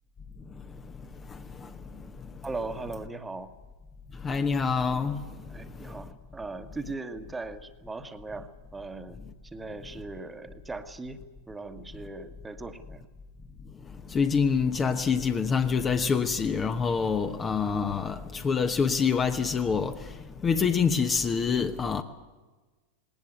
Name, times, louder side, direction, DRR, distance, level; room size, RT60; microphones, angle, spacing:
voice 1, 2.4-3.5 5.5-9.2 9.5-11.2 11.5-13.0, right 3 dB, 10° right, 1.5 m, -39 dB
voice 2, 4.2-5.2 14.1-20.0 20.4-22.0, left 5 dB, 20° left, 1.1 m, -26 dB
20.0 x 19.0 x 9.3 m
figure-of-eight pair, 90°, 0 cm